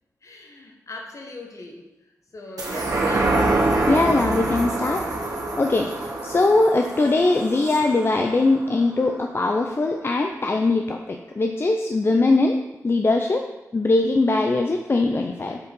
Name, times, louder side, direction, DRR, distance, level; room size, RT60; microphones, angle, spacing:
voice 1, 0.2-1.9 2.3-3.5, left 2 dB, 60° left, 1 dB, 1.3 m, -39 dB
sound 1, 2.6-9.4 9.8-9.9, right 2 dB, 85° right, 1.4 m, -26 dB
voice 2, 3.9-5.0 5.6-12.6 12.8-13.4 13.7-15.6, left 2 dB, 40° left, 3 dB, 0.5 m, -21 dB
6.6 x 4.8 x 5.4 m, 1.0 s
wide cardioid pair, 80°, 6 cm